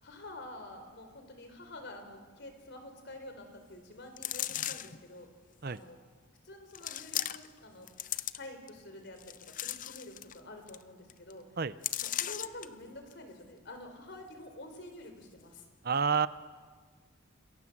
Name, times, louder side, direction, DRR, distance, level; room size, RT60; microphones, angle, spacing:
voice 1, 0.0-5.3 5.6-6.0 6.4-7.9 8.3-11.4 12.0-15.6, left 2 dB, 55° left, 6 dB, 4.2 m, -48 dB
sound 1, 4.2-5.0 5.8-5.9 6.7-7.6 7.9-8.7 9.2-10.4 10.7-10.8 11.1-11.3 11.8-12.7 13.1-13.2, left 12 dB, 40° left, 0.6 m, -36 dB
voice 2, 15.8-16.3, right 6 dB, 50° right, 15 dB, 0.6 m, -28 dB
27.0 x 22.0 x 7.4 m, 1.5 s
head